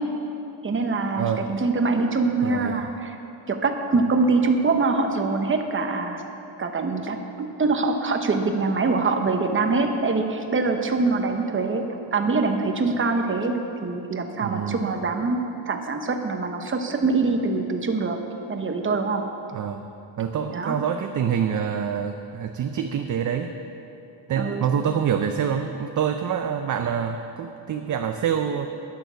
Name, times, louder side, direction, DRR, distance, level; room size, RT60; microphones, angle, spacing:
voice 1, 0.6-3.2 3.5-6.2 6.6-11.8 12.1-18.2 18.5-19.2 20.5-20.8 24.4-24.7, right 3 dB, 25° right, 5 dB, 0.9 m, -24 dB
voice 2, 1.2-1.5 2.4-2.9 14.4-14.9 19.5-19.9 20.2-23.5 24.3-28.7, right 8 dB, 40° right, 6 dB, 0.5 m, -26 dB
10.5 x 10.5 x 6.9 m, 2.8 s
cardioid pair, 155°, 48 cm